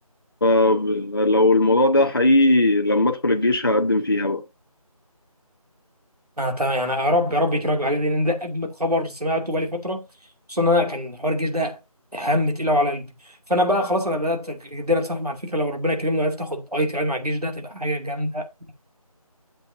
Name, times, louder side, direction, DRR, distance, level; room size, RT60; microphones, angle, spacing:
voice 1, 0.4-4.4, left 2 dB, 40° left, 0.6 m, -18 dB
voice 2, 6.4-10.1 10.5-11.8 12.1-18.7, left 1 dB, 90° right, 2.5 m, -24 dB
11.5 x 7.5 x 2.7 m
figure-of-eight pair, 170°, 19 cm